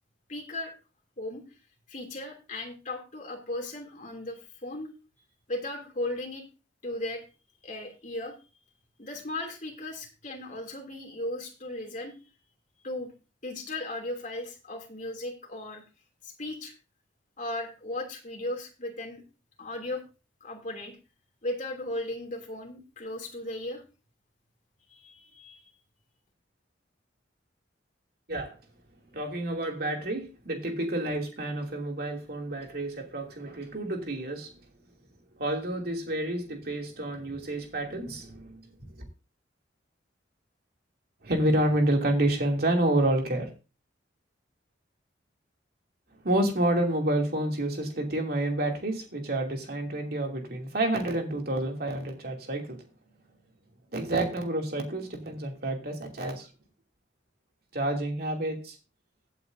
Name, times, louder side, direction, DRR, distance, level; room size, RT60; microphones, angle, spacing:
voice 1, 0.3-0.7 1.2-1.4 1.9-4.9 5.5-6.4 6.8-7.2 7.6-8.3 9.0-12.2 12.8-13.1 13.4-15.8 16.2-16.7 17.4-19.2 19.6-20.0 20.4-21.0 21.4-23.8 24.9-25.7, left 1 dB, 40° left, 1 dB, 2.8 m, -36 dB
voice 2, 29.1-34.5 35.4-38.6 39.0-39.1 41.2-43.5 46.2-52.8 53.9-56.5 57.7-58.8, right 1 dB, 55° right, 2 dB, 2.7 m, -29 dB
16.0 x 8.3 x 2.7 m, 0.32 s
head